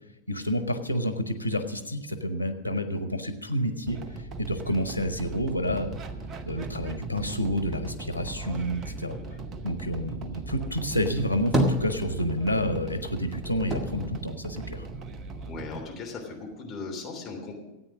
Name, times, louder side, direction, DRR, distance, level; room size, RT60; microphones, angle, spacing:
voice 1, 0.3-6.0 6.5-9.1 9.6-14.9, equal, 90° right, 9 dB, 0.9 m, -29 dB
sound 1, 3.9-15.8, right 3 dB, 30° right, 0.9 m, -38 dB
sound 2, 11.2-12.6 12.9-15.3 15.6-16.5, right 1 dB, 15° right, 1.8 m, -30 dB
voice 2, 15.4-17.5, left 4 dB, 25° left, 0 dB, 3.2 m, -38 dB
14.0 x 8.9 x 6.2 m, 0.97 s
figure-of-eight pair, 90°, 0 cm